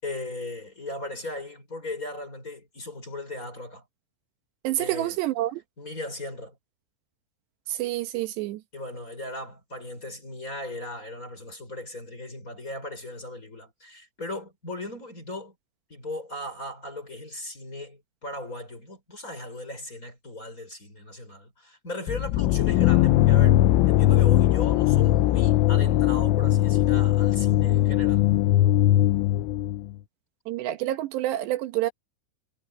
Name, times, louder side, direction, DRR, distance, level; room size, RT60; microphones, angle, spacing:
voice 1, 0.0-3.8 4.8-5.2 5.8-6.6 8.7-15.5 15.9-28.3, left 1 dB, 15° left, 5.5 m, -37 dB
voice 2, 4.6-5.6 7.7-8.6 30.5-31.9, right 15 dB, 70° right, 2.9 m, -28 dB
sound 1, 22.1-29.9, left 14 dB, 80° left, 3.4 m, -20 dB
omnidirectional pair, 6.0 m